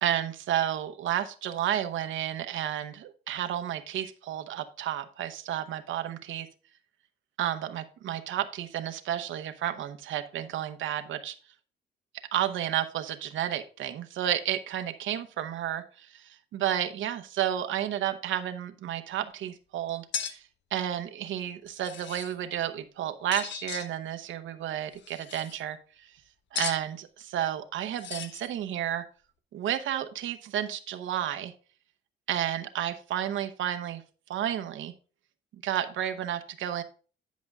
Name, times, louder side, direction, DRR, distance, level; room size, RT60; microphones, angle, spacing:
voice 1, 0.0-6.5 7.4-11.3 12.3-20.4 20.7-26.1 26.5-29.0 29.5-31.5 32.3-34.0 34.3-34.9 35.5-36.8, right 11 dB, 75° right, 9 dB, 0.9 m, -31 dB
sound 1, 20.1-20.3 21.7-22.3 23.3-23.9 25.0-25.6 26.5-26.8 27.9-28.5, left 8 dB, 65° left, 0.8 m, -36 dB
10.5 x 5.2 x 3.5 m, 0.38 s
cardioid pair, 90°, 20 cm